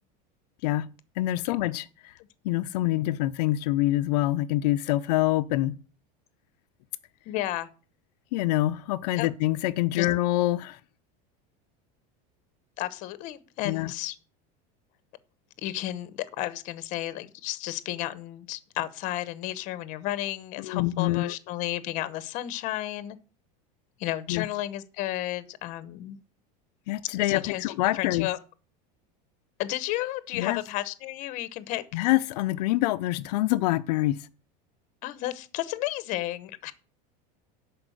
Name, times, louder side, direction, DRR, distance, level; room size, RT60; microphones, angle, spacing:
voice 1, 1.2-2.1 2.4-5.8 8.3-10.8 13.6-13.9 20.6-21.3 24.3-24.5 26.9-28.3 30.3-30.6 31.9-34.3, left 16 dB, 70° left, 0.5 m, -26 dB
voice 2, 7.3-7.7 9.2-9.3 9.9-10.1 12.8-14.2 15.6-23.2 24.0-26.2 27.2-27.7 27.9-28.4 29.6-31.8 35.0-36.7, left 15 dB, 35° left, 0.9 m, -32 dB
11.0 x 4.7 x 7.8 m
cardioid pair, 180°, 21 cm